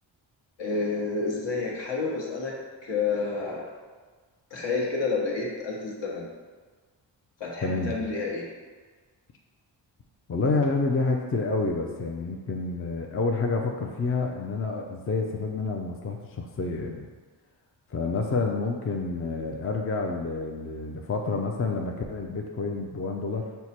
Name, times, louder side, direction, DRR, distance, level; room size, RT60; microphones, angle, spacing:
voice 1, 0.6-2.5 2.8-3.6 4.5-6.3 7.4-8.5, left 4 dB, 65° left, -3 dB, 1.1 m, -29 dB
voice 2, 7.6-8.0 10.3-17.1 17.9-23.4, left 3 dB, 30° left, 1 dB, 0.4 m, -28 dB
4.6 x 2.2 x 4.2 m, 1.4 s
cardioid pair, 60°, 46 cm